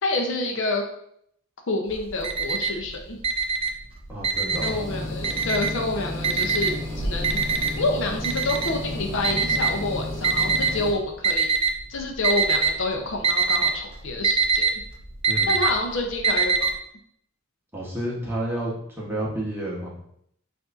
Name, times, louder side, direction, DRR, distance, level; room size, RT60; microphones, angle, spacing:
voice 1, 0.0-0.8 1.7-3.2 4.6-7.4 7.8-11.6 11.9-14.7 15.5-16.7, left 2 dB, 60° left, 2 dB, 0.7 m, -28 dB
Alarm, 1.9-2.9 3.2-4.8 5.2-5.9 6.2-10.7 11.2-11.8 12.1-12.8 13.0-16.7, right 5 dB, 25° right, 0.3 m, -23 dB
voice 2, 4.1-4.7 15.3-15.6 17.7-20.0, right 1 dB, 10° right, -5 dB, 1.0 m, -30 dB
sound 1, 4.5-10.9, left 1 dB, 30° left, 0.9 m, -33 dB
7.2 x 2.6 x 2.5 m, 0.70 s
head